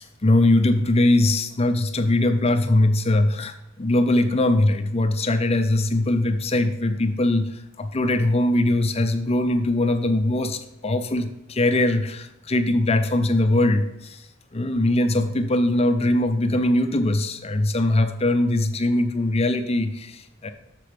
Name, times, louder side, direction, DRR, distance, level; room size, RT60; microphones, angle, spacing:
voice 1, 0.0-7.5 7.8-14.2 14.5-20.5, left 1 dB, 30° left, 8 dB, 0.6 m, -21 dB
6.8 x 6.1 x 5.0 m, 0.88 s
head